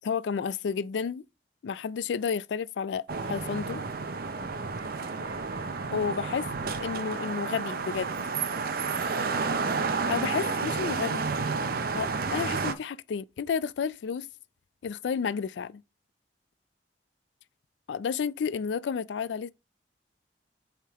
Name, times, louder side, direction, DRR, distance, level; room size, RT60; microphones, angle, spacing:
voice 1, 0.0-1.2 1.6-3.8 5.9-6.5 6.8-8.1 10.1-11.3 11.9-14.3 14.8-15.8 17.9-19.5, left 6 dB, 85° left, 0.4 m, -31 dB
sound 1, 3.1-12.7, right 4 dB, 55° right, 0.7 m, -31 dB
sound 2, 4.6-12.6, equal, 20° right, 1.6 m, -51 dB
7.4 x 3.6 x 3.6 m
head